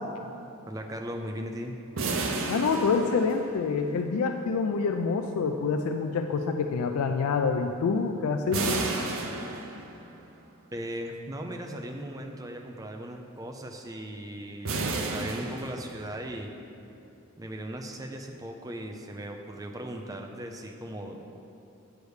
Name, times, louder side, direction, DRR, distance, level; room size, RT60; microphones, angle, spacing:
voice 1, 0.6-1.8 10.7-16.5 17.4-21.4, right 1 dB, 15° right, 3 dB, 0.4 m, -38 dB
sound 1, 2.0-3.8 8.5-10.2 14.6-16.3, right 3 dB, 65° right, 0.6 m, -32 dB
voice 2, 2.5-9.0, left 4 dB, 90° left, 5 dB, 0.3 m, -27 dB
8.1 x 3.4 x 6.3 m, 2.7 s
head